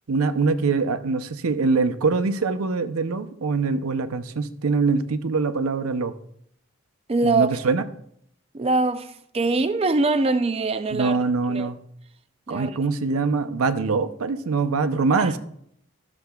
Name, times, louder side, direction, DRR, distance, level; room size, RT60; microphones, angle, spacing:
voice 1, 0.1-6.1 7.2-7.8 10.9-11.8 12.5-15.4, right 4 dB, 85° right, 0.6 m, -23 dB
voice 2, 7.1-7.6 8.5-11.2 11.5-11.7 12.5-12.7 15.2-15.4, right 3 dB, 25° right, 0.4 m, -23 dB
13.0 x 6.8 x 2.3 m
head